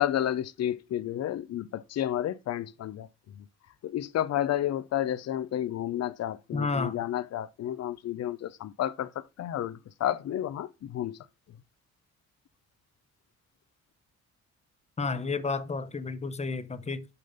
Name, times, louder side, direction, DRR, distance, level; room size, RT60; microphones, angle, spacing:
voice 1, 0.0-3.1 3.4-3.5 3.8-11.2, left 11 dB, 55° left, 0.7 m, -31 dB
voice 2, 6.5-7.0 15.0-17.1, left 4 dB, 20° left, 0.9 m, -31 dB
6.9 x 5.2 x 5.5 m
cardioid pair, 90°, 30 cm